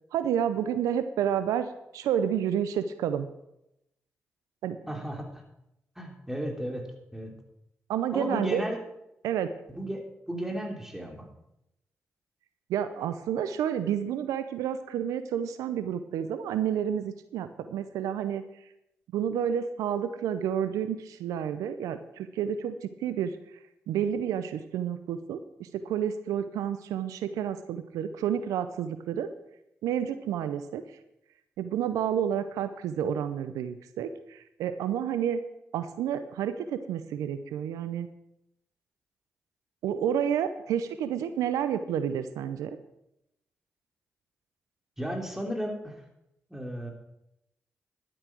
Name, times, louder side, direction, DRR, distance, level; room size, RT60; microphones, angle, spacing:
voice 1, 0.1-1.7 1.9-3.3 4.6-4.8 7.9-8.6 9.2-9.5 12.7-18.4 19.1-23.3 23.9-29.3 29.8-30.8 31.6-35.4 35.7-38.1 39.8-42.8, right 9 dB, 85° right, 11 dB, 0.6 m, -30 dB
voice 2, 4.9-5.4 5.9-7.3 8.1-8.8 9.7-11.3 45.0-46.0 46.5-46.9, equal, 5° right, 2 dB, 3.3 m, -34 dB
11.5 x 8.7 x 6.1 m, 0.84 s
supercardioid pair, 40°, 6 cm